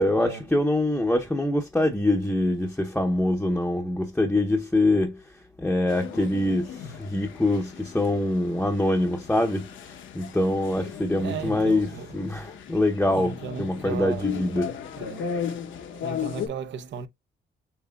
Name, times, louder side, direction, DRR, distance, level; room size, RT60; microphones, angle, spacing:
voice 1, 0.0-5.2 5.6-9.7 10.1-14.7, left 1 dB, 5° left, 0.7 m, -24 dB
sound 1, 5.9-16.5, left 8 dB, 75° left, 0.9 m, -36 dB
voice 2, 11.2-12.1 13.1-14.4 14.9-15.3 16.0-17.1, right 7 dB, 65° right, 0.8 m, -35 dB
7.2 x 2.7 x 2.3 m
cardioid pair, 90°, 20 cm